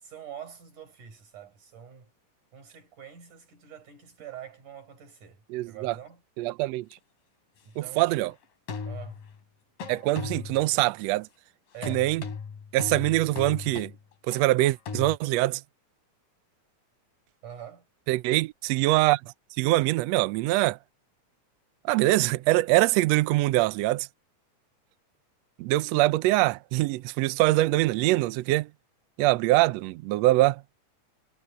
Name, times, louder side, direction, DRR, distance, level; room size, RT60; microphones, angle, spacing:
voice 1, 0.0-2.1 2.5-6.2 7.6-8.3 8.8-9.2 11.7-12.1 17.4-17.9, right 9 dB, 65° right, 7.0 m, -45 dB
voice 2, 5.5-5.9 6.4-6.9 8.0-8.3 9.9-11.3 11.9-12.2 12.7-13.9 14.3-15.6 18.1-19.2 19.6-20.8 21.8-24.1 25.6-28.7 29.2-30.6, right 18 dB, 90° right, 1.4 m, -23 dB
sound 1, 6.9-7.0 8.7-9.4 9.8-10.7 11.8-15.2, left 5 dB, 80° left, 4.8 m, -37 dB
omnidirectional pair, 3.8 m